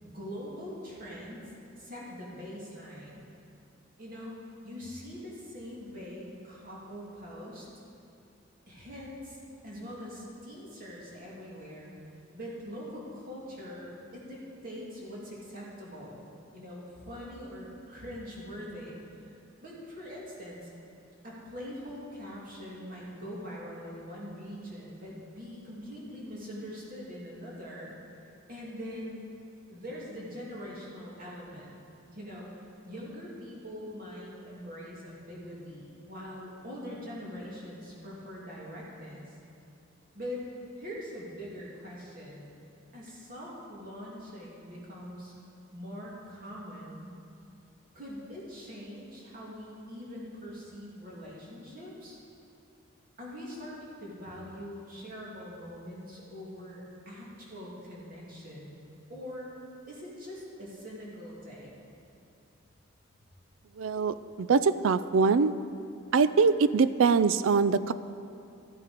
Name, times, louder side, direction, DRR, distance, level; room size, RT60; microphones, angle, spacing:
voice 1, 0.0-3.3 4.0-4.3 4.6-7.7 8.7-9.4 9.6-11.9 12.3-16.3 16.5-19.0 19.3-19.4 19.6-20.7 21.2-28.0 28.5-29.2 29.7-31.7 32.1-32.5 32.9-39.3 40.1-40.4 40.8-42.5 42.9-45.3 45.7-47.1 47.9-52.2 53.2-58.7 59.1-59.5 59.9-61.7, equal, 45° right, -5 dB, 2.7 m, -43 dB
voice 2, 63.8-65.5 66.1-67.9, right 5 dB, 80° right, 14 dB, 0.4 m, -23 dB
13.5 x 8.4 x 5.1 m, 2.5 s
head